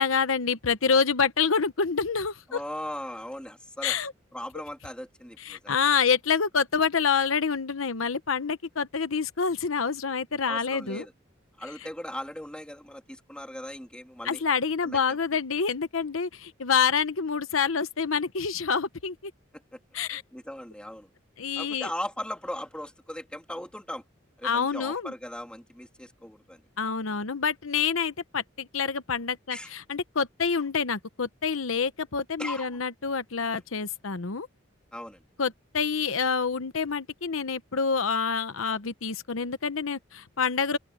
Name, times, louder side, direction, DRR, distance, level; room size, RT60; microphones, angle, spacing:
voice 1, 0.0-2.6 3.8-4.1 5.4-11.1 14.2-19.3 19.9-20.2 21.4-21.9 24.4-25.1 26.8-34.5 35.4-40.8, left 5 dB, 85° left, 0.9 m, -27 dB
voice 2, 2.5-4.0 4.3-5.7 10.5-11.1 11.6-14.4 14.8-15.2 19.5-19.8 20.1-21.1 21.6-24.0 24.4-26.6 29.5-29.7 32.4-32.8 34.9-35.2, left 1 dB, 5° left, 2.6 m, -38 dB
open air
head